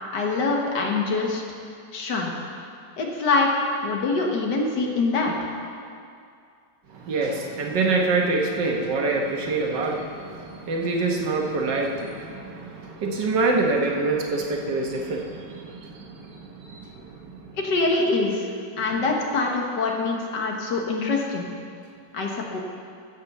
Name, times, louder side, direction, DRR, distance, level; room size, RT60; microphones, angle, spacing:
voice 1, 0.1-1.4 1.9-2.3 3.0-3.5 3.8-5.5 17.6-18.5 18.8-21.5 22.1-22.6, left 3 dB, 70° left, 0 dB, 1.9 m, -24 dB
voice 2, 6.9-17.5 18.8-18.9, right 3 dB, 75° right, 1 dB, 1.9 m, -26 dB
14.5 x 5.5 x 6.8 m, 2.4 s
omnidirectional pair, 1.9 m